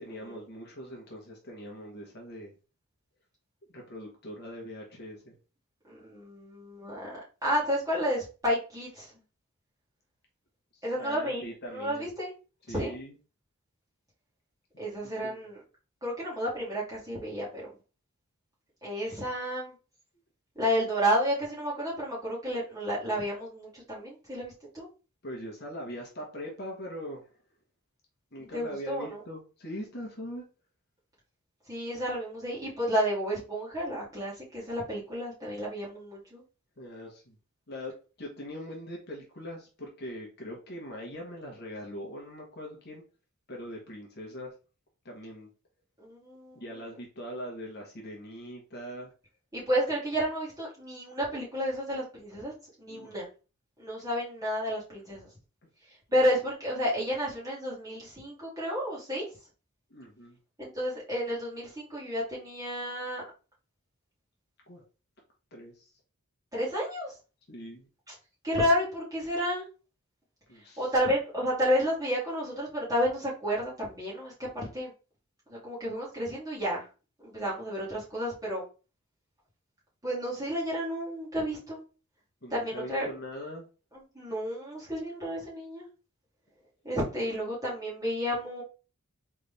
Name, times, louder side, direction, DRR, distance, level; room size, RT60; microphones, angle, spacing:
voice 1, 0.0-2.5 3.7-5.4 10.7-12.1 12.7-13.2 14.7-15.4 25.2-27.3 28.3-30.4 36.8-37.3 37.7-37.9 38.2-43.0 43.5-44.5 45.0-45.5 46.5-49.1 52.9-53.2 59.9-60.4 64.7-64.8 65.5-65.9 67.5-67.9 70.5-70.9 82.4-83.7, equal, 45° left, -1 dB, 1.2 m, -41 dB
voice 2, 5.9-9.1 10.8-11.4 11.7-12.3 12.7-12.9 14.8-15.6 16.0-17.6 18.8-19.7 20.6-24.9 28.5-29.2 31.7-36.4 46.0-46.5 49.5-52.5 52.8-53.3 53.8-55.3 56.1-59.2 60.6-63.2 66.5-67.1 68.4-69.6 70.8-74.9 75.5-76.9 77.2-78.6 80.0-81.8 82.5-83.1 84.1-85.9 86.8-88.6, equal, 15° right, -7 dB, 2.4 m, -31 dB
4.0 x 3.5 x 3.4 m, 0.34 s
head